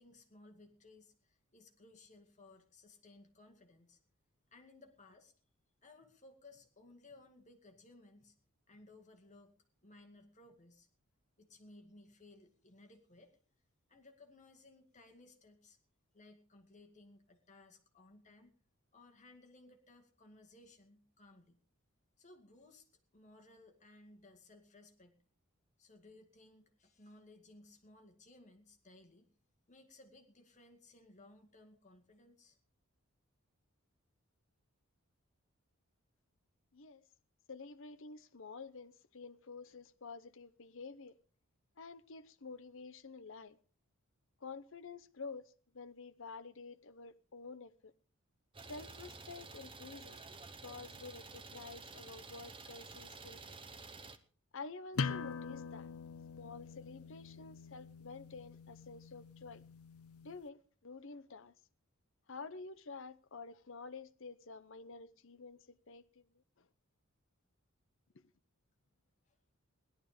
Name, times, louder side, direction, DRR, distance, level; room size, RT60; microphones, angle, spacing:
voice 1, 0.0-4.0 4.5-5.3 5.8-8.3 8.7-9.5 9.8-10.9 11.4-13.4 13.9-15.8 16.1-18.5 18.9-21.6 22.2-22.9 23.1-25.2 25.8-29.3 29.7-32.6 69.3-69.4, left 2 dB, 35° left, 2.2 m, -60 dB
voice 2, 36.7-37.1 37.5-41.2 41.8-43.6 44.4-47.9 48.7-50.2 50.6-53.6 54.5-55.9 56.3-59.6 60.2-61.5 62.3-66.7 68.1-68.2, left 4 dB, 60° left, 0.8 m, -50 dB
Idling, 48.5-54.2, right 4 dB, 25° right, 1.0 m, -51 dB
sound 1, 54.9-60.3, left 5 dB, 90° left, 0.7 m, -43 dB
17.0 x 12.0 x 5.1 m
head